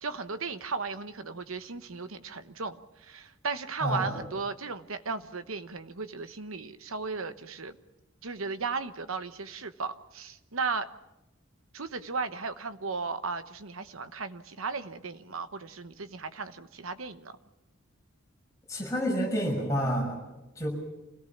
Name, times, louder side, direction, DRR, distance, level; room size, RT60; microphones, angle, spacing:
voice 1, 0.0-7.8 8.2-10.9 11.7-17.4, right 4 dB, 90° right, 11 dB, 1.1 m, -35 dB
voice 2, 3.8-4.2 18.7-20.2 20.6-20.7, equal, 15° left, -2 dB, 6.3 m, -29 dB
26.5 x 17.5 x 7.3 m, 0.96 s
head